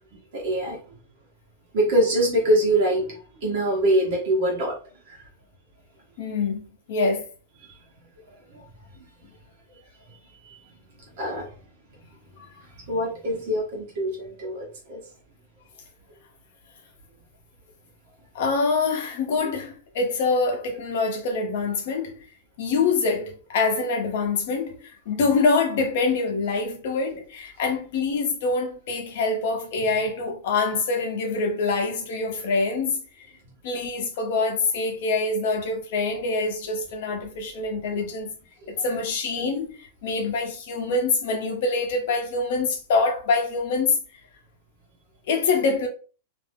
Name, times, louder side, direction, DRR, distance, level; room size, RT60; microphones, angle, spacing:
voice 1, 0.3-0.8 1.7-4.8 5.1-5.2 8.5-8.6 10.5-10.6 11.2-11.5 12.9-15.0 38.8-38.9, right 1 dB, 45° right, 1.0 m, -24 dB
voice 2, 6.2-7.3 12.4-12.5 18.3-22.3 22.6-33.0 33.6-38.3 38.7-44.0 45.3-45.9, left 4 dB, 50° left, 0.8 m, -25 dB
2.5 x 2.0 x 3.5 m
supercardioid pair, 180°, 0 cm